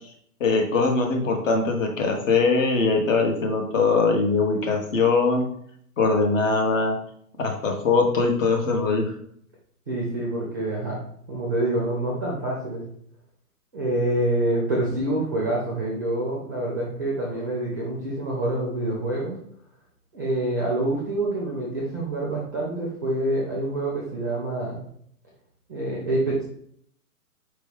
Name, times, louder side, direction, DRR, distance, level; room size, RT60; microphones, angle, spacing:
voice 1, 0.4-5.5 6.0-7.0 7.4-9.1, left 4 dB, 55° left, 3 dB, 1.1 m, -21 dB
voice 2, 9.9-11.0 11.3-12.8 13.7-19.3 20.1-24.8 25.7-26.4, right 1 dB, 15° right, -4 dB, 0.4 m, -26 dB
4.6 x 3.0 x 3.4 m, 0.66 s
hypercardioid pair, 140°, 47 cm